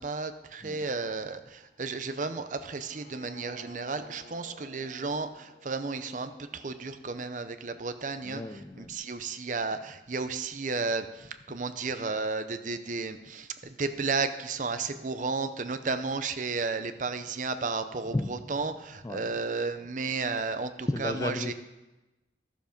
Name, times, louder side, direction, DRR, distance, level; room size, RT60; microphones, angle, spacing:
voice 1, 0.0-8.4 8.8-21.5, right 4 dB, 45° right, 10 dB, 0.6 m, -33 dB
sound 1, 1.8-7.8, equal, 90° left, 3.1 m, -53 dB
voice 2, 8.2-9.0 18.1-18.5 19.0-19.3 20.9-21.5, left 1 dB, 20° left, 9 dB, 0.4 m, -33 dB
13.0 x 7.2 x 5.2 m, 1.0 s
head